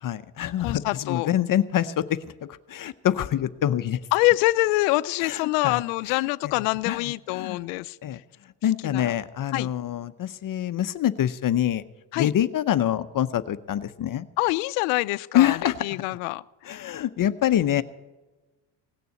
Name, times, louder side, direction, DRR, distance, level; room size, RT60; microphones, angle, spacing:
voice 1, 0.0-4.0 5.2-5.8 6.1-6.2 6.9-7.0 7.3-7.6 8.0-8.2 8.6-11.8 12.1-14.3 15.3-16.0 16.6-17.8, left 11 dB, 40° left, 12 dB, 0.7 m, -25 dB
voice 2, 0.6-1.3 4.1-8.2 8.8-9.1 9.5-9.7 12.1-12.3 14.4-16.4, left 21 dB, 85° left, 15 dB, 0.6 m, -25 dB
17.5 x 6.8 x 9.1 m, 1.1 s
supercardioid pair, 90°, 49 cm